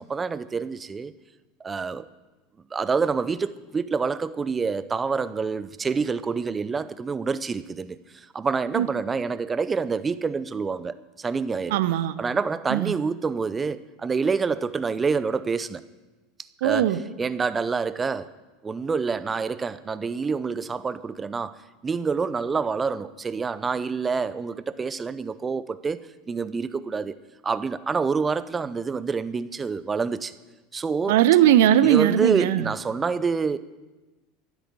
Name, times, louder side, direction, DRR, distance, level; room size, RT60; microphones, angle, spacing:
voice 1, 0.1-1.1 1.6-2.1 2.7-11.8 12.2-15.8 16.6-16.9 17.2-18.3 18.6-21.6 21.8-26.0 26.3-27.2 27.4-30.3 30.7-31.2 31.8-33.6, right 5 dB, 20° right, 0.6 m, -27 dB
voice 2, 11.7-12.2 12.7-12.9 16.6-17.0 31.1-32.7, right 11 dB, 60° right, 0.7 m, -19 dB
13.5 x 8.2 x 8.7 m
figure-of-eight pair, 75°, 0 cm